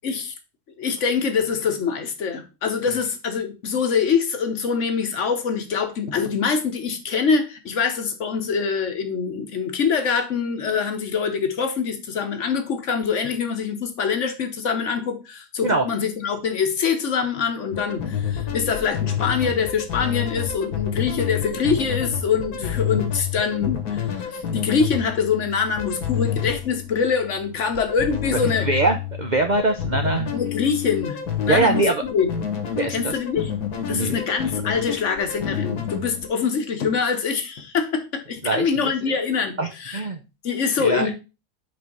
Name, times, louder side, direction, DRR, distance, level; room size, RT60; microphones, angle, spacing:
voice 1, 0.0-0.3 0.8-28.7 30.3-32.3 32.9-33.5 33.9-40.0 40.4-41.1, left 6 dB, 55° left, 1.1 m, -24 dB
sound 1, 17.7-36.3, left 9 dB, 75° left, 1.6 m, -29 dB
voice 2, 28.6-30.3 31.5-31.9 32.8-33.2 33.9-34.2 38.4-39.1 39.6-40.2 40.8-41.1, right 2 dB, 60° right, 0.4 m, -23 dB
5.2 x 3.9 x 5.2 m
omnidirectional pair, 1.7 m